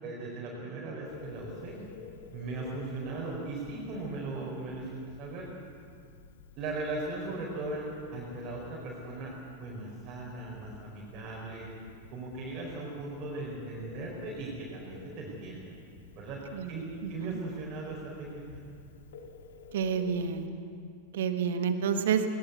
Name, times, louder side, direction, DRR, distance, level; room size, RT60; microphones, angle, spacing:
voice 1, 0.0-1.8 2.3-5.5 6.6-9.3 9.6-11.7 12.1-15.7 16.1-16.4 16.7-18.6, right 2 dB, 35° right, -4 dB, 4.6 m, -38 dB
Telephone, 1.0-20.5, left 5 dB, 60° left, 1.7 m, -51 dB
voice 2, 17.0-17.4 19.7-20.5 21.1-22.2, right 7 dB, 60° right, 8 dB, 1.6 m, -29 dB
21.0 x 19.0 x 8.1 m, 2.3 s
figure-of-eight pair, 90°, 0 cm